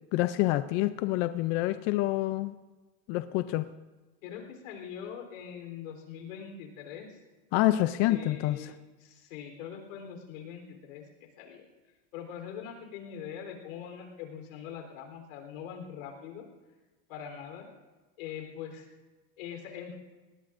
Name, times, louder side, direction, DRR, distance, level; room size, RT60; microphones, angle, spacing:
voice 1, 0.1-2.5 3.1-3.7 7.5-8.6, left 16 dB, 35° left, 11 dB, 0.4 m, -27 dB
voice 2, 4.2-7.2 8.1-8.7 9.0-11.7 12.1-16.4 17.1-17.7 18.2-18.9 19.4-20.0, left 8 dB, 75° left, 3 dB, 3.7 m, -42 dB
21.0 x 18.5 x 2.5 m, 1.3 s
supercardioid pair, 160°, 39 cm